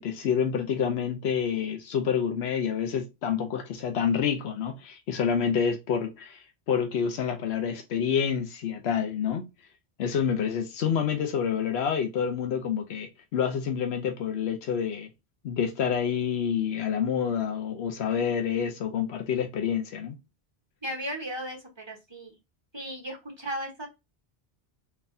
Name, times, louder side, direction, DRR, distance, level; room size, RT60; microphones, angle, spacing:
voice 1, 0.0-9.5 10.0-15.1 15.4-20.1, left 7 dB, 90° left, 0.9 m, -28 dB
voice 2, 20.8-22.4 22.7-23.9, equal, 25° right, 1.0 m, -36 dB
3.9 x 2.7 x 2.5 m
omnidirectional pair, 1.1 m